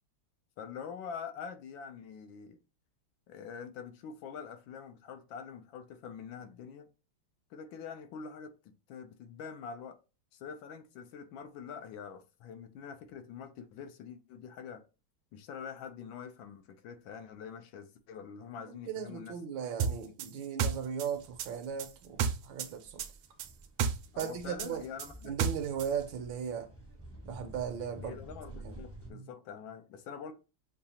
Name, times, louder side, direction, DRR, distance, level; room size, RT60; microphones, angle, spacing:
voice 1, 0.6-2.6 3.3-6.9 7.5-10.0 10.3-14.8 15.3-19.4 20.0-20.1 24.1-25.3 28.0-30.3, left 6 dB, 75° left, 1.3 m, -45 dB
voice 2, 18.7-23.0 24.2-24.8 25.2-26.7 27.2-28.2 28.5-28.8 29.1-29.3, right 8 dB, 75° right, 1.4 m, -37 dB
sound 1, 19.8-22.7 23.0-25.9, right 6 dB, 90° right, 1.4 m, -32 dB
sound 2, 21.1-29.1, right 1 dB, 15° right, 0.4 m, -51 dB
6.7 x 2.4 x 2.8 m
omnidirectional pair, 2.2 m